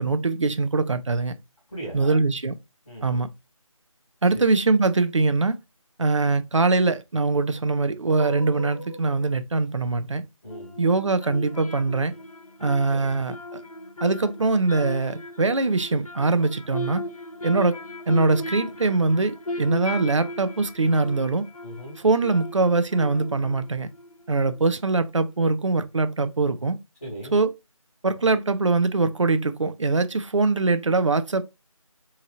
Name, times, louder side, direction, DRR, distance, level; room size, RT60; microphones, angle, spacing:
voice 1, 0.0-1.3 1.9-2.5 3.0-3.3 4.2-5.6 6.0-10.2 10.8-12.1 12.6-13.6 14.0-17.0 17.4-17.8 18.1-21.5 22.0-23.9 24.3-26.8 27.3-27.5 28.0-31.4, right 3 dB, 60° right, 0.5 m, -22 dB
voice 2, 1.7-2.2 2.8-3.2 4.3-4.4 10.4-10.8 12.9-13.1 21.6-22.0 27.0-27.3, right 1 dB, 10° left, 0.8 m, -38 dB
sound 1, 8.2-9.4 10.5-25.0 25.3-25.4, left 2 dB, 90° left, 0.9 m, -38 dB
2.8 x 2.5 x 2.8 m
figure-of-eight pair, 165°, 18 cm